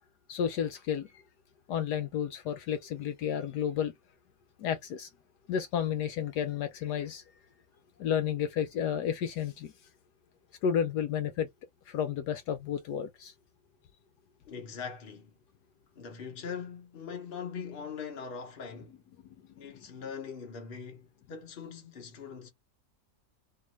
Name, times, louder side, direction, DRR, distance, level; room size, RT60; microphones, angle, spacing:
voice 1, 0.3-1.2 1.7-3.9 4.6-5.1 5.5-7.2 8.0-9.7 10.6-11.5 11.9-13.3, left 8 dB, 70° left, 1.2 m, -31 dB
voice 2, 14.5-15.3 15.9-19.0 19.6-22.5, left 6 dB, 40° left, 1.0 m, -41 dB
4.4 x 2.6 x 3.1 m
omnidirectional pair, 1.9 m